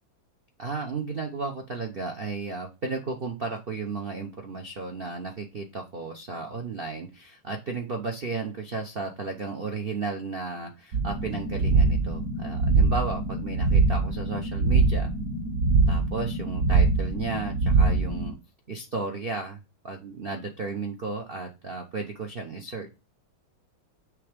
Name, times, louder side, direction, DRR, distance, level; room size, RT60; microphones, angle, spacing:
voice 1, 0.6-15.1 15.9-18.3 18.7-19.6 19.8-22.9, right 4 dB, 85° right, 3 dB, 0.5 m, -34 dB
sound 1, 10.9-18.3, right 4 dB, 55° right, 1.3 m, -23 dB
6.6 x 3.5 x 5.1 m, 0.28 s
omnidirectional pair, 2.2 m